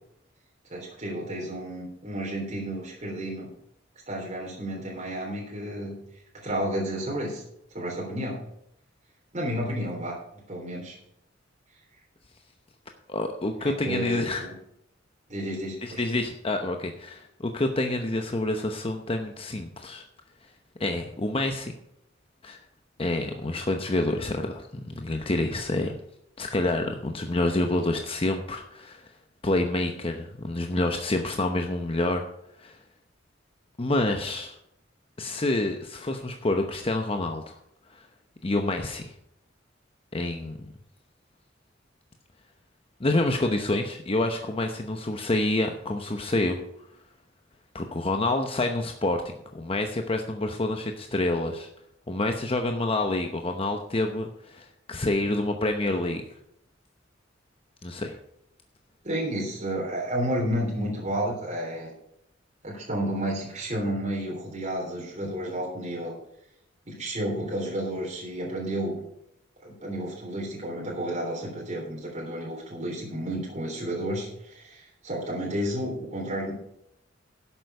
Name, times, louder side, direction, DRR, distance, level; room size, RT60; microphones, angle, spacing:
voice 1, 0.7-3.5 4.1-6.0 6.3-7.4 7.7-8.4 9.3-10.2 10.5-11.0 13.6-14.5 15.3-16.0 59.0-61.9 62.6-66.1 66.9-69.0 69.6-76.5, right 1 dB, 40° right, -3 dB, 3.4 m, -31 dB
voice 2, 13.1-14.5 15.8-20.0 20.8-21.7 22.4-22.6 23.0-25.9 26.4-29.1 29.4-32.2 32.6-32.8 33.8-34.6 35.2-37.6 37.9-38.1 38.4-39.1 40.1-40.7 43.0-46.6 47.7-51.7 52.1-56.2 57.8-58.2, left 2 dB, 30° left, 4 dB, 0.9 m, -28 dB
11.5 x 7.9 x 5.5 m, 0.77 s
head